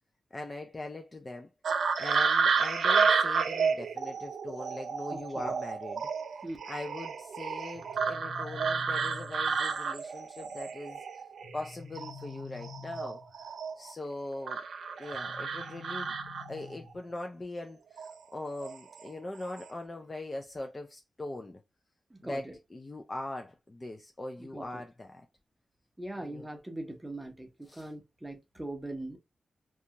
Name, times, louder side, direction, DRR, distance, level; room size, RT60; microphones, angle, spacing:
voice 1, 0.3-1.5 2.0-6.1 6.7-11.0 11.5-14.6 15.0-16.2 16.5-21.6 22.2-25.3 26.2-26.5 27.7-27.9, left 2 dB, 25° left, 0.3 m, -41 dB
sound 1, 1.6-11.7 11.9-13.9 14.5-16.7 17.9-18.1 18.6-19.1 19.3-19.6, right 5 dB, 80° right, 0.3 m, -31 dB
voice 2, 5.1-5.5 6.4-6.6 22.1-22.5 24.4-24.8 26.0-29.2, right 1 dB, 10° right, 0.6 m, -41 dB
sound 2, 7.7-9.7 11.4-13.5 15.1-17.1, left 5 dB, 85° left, 0.7 m, -47 dB
2.6 x 2.3 x 2.7 m
wide cardioid pair, 160°, 0 cm